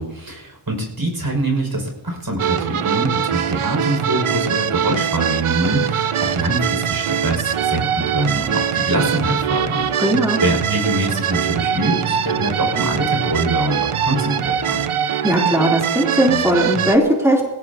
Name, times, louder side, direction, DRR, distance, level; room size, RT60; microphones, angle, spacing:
voice 1, 0.0-10.0 10.4-14.8, right 1 dB, 45° right, 2 dB, 6.2 m, -24 dB
sound 1, 2.4-17.0, right 8 dB, 90° right, 0.7 m, -22 dB
voice 2, 10.0-10.4 15.1-17.5, equal, 5° right, -3 dB, 3.3 m, -18 dB
22.0 x 17.0 x 2.9 m, 1.1 s
wide cardioid pair, 55°, 48 cm